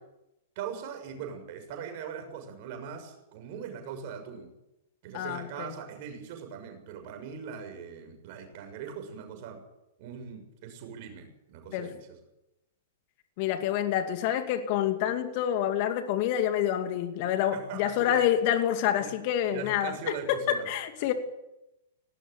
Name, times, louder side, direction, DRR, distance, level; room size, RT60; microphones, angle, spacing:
voice 1, 0.5-4.5 5.0-9.6 10.0-12.2 17.5-18.2 19.0-19.1 19.5-20.7, right 7 dB, 50° right, 6 dB, 6.6 m, -40 dB
voice 2, 5.1-5.7 11.7-11.9 13.4-21.1, left 10 dB, 45° left, 7 dB, 2.5 m, -27 dB
19.0 x 19.0 x 9.7 m, 0.91 s
hypercardioid pair, 110°, 0 cm